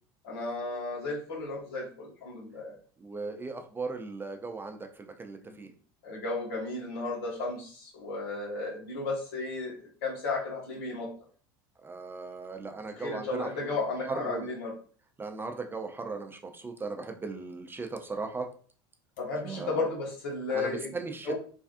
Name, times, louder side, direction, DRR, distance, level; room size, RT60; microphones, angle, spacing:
voice 1, 0.2-2.7 5.4-5.6 6.0-11.1 12.9-14.7 19.2-20.9 21.2-21.4, left 3 dB, 75° left, -2 dB, 1.3 m, -34 dB
voice 2, 3.0-5.7 11.8-13.5 14.1-14.5 15.2-18.5 19.4-19.9 20.5-21.4, right 4 dB, 15° right, 5 dB, 0.4 m, -37 dB
3.3 x 2.3 x 2.5 m, 0.43 s
hypercardioid pair, 90°, 13 cm